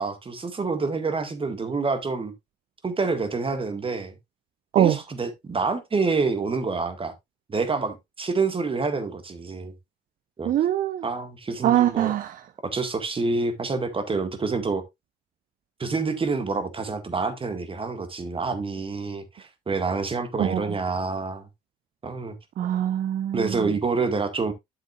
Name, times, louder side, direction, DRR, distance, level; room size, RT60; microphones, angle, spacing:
voice 1, 0.0-2.3 2.8-4.1 4.8-7.1 7.5-9.7 10.4-10.5 11.0-12.1 12.6-14.8 15.8-21.5 22.0-22.4 23.3-24.5, right 4 dB, 25° right, 1.9 m, -27 dB
voice 2, 10.4-11.0 11.6-12.4 20.4-20.7 22.6-23.6, right 11 dB, 45° right, 0.6 m, -23 dB
9.4 x 7.4 x 2.5 m
figure-of-eight pair, 55°, 20 cm